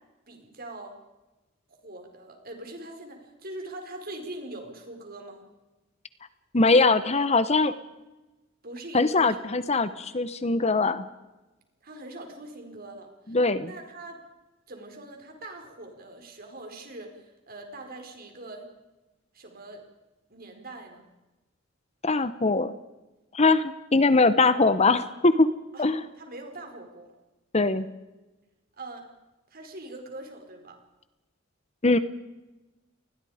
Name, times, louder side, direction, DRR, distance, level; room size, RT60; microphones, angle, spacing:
voice 1, 0.3-1.0 1.7-5.4 8.6-9.4 11.8-13.4 13.6-14.2 14.7-18.7 19.3-19.8 20.3-21.1 25.7-25.8 26.2-27.1 28.8-29.1 29.5-30.8, right 2 dB, 50° right, 4 dB, 4.8 m, -42 dB
voice 2, 6.5-7.7 8.9-11.1 13.3-13.7 22.0-22.7 23.3-25.5 25.8-26.0 27.5-27.9 31.8-32.0, left 3 dB, 35° left, 13 dB, 1.0 m, -22 dB
28.5 x 20.5 x 5.1 m, 1.1 s
head